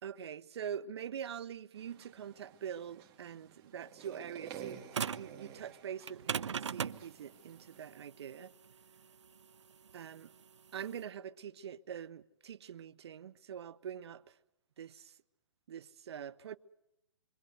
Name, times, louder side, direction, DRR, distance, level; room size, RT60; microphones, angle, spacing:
voice 1, 0.0-4.8 5.1-8.5 9.9-10.3 10.7-14.3 14.8-15.1 15.7-16.6, right 8 dB, 65° right, 1.1 m, -44 dB
sound 1, 1.7-7.9, right 8 dB, 25° right, 3.2 m, -52 dB
sound 2, 4.9-5.3 6.0-11.0, right 7 dB, 85° right, 0.9 m, -38 dB
27.0 x 24.5 x 7.9 m
hypercardioid pair, 150°, 15 cm